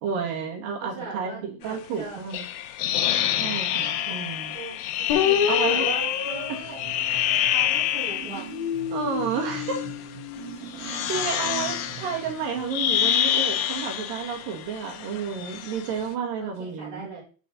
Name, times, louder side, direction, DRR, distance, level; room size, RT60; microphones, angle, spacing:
voice 1, 0.0-2.4 3.4-4.6 5.5-5.9 6.5-6.6 8.9-9.8 10.8-17.1, right 6 dB, 60° right, 2 dB, 3.0 m, -31 dB
voice 2, 0.8-2.2 4.5-6.9 7.4-8.5 16.4-17.2, right 3 dB, 45° right, -11 dB, 5.2 m, -39 dB
sound 1, 2.3-8.5 9.3-10.0 10.7-16.0, left 11 dB, 90° left, 2.0 m, -27 dB
sound 2, 5.1-7.8 8.4-10.9, left 9 dB, 65° left, 3.0 m, -29 dB
sound 3, 6.3-13.8, right 13 dB, 85° right, 2.9 m, -43 dB
9.7 x 5.3 x 4.1 m, 0.37 s
omnidirectional pair, 5.0 m